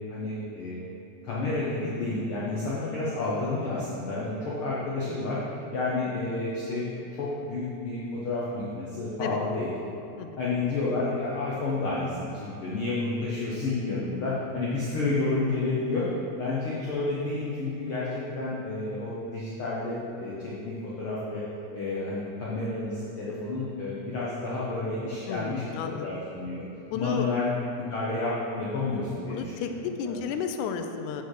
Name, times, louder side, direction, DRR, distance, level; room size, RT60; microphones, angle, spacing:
voice 1, 0.1-0.8 1.2-5.4 5.7-6.9 7.2-9.7 10.4-16.1 16.3-21.4 21.7-25.6 26.0-26.6 26.9-27.5 27.8-29.7 30.0-30.2, left 3 dB, 60° left, -7 dB, 1.6 m, -30 dB
voice 2, 25.3-26.1 26.9-27.3 29.3-31.2, left 7 dB, 90° left, 6 dB, 2.0 m, -32 dB
8.0 x 6.5 x 4.8 m, 2.9 s
omnidirectional pair, 3.4 m